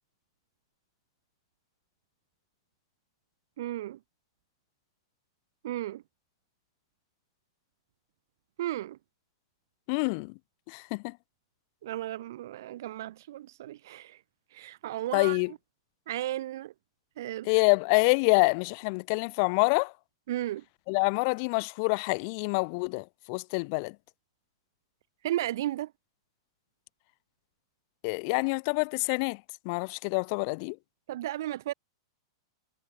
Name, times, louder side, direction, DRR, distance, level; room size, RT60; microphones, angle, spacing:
voice 1, 3.6-4.0 5.6-6.0 8.6-9.0 11.8-14.2 14.5-15.4 16.1-16.7 17.2-17.5 20.3-20.6 25.2-25.9 31.1-31.7, right 14 dB, 55° right, 0.5 m, -34 dB
voice 2, 9.9-10.3 10.7-11.1 15.1-15.5 17.5-19.9 20.9-23.9 28.0-29.4 29.7-30.8, left 34 dB, 45° left, 0.4 m, -26 dB
figure-of-eight pair, 100°, 2 cm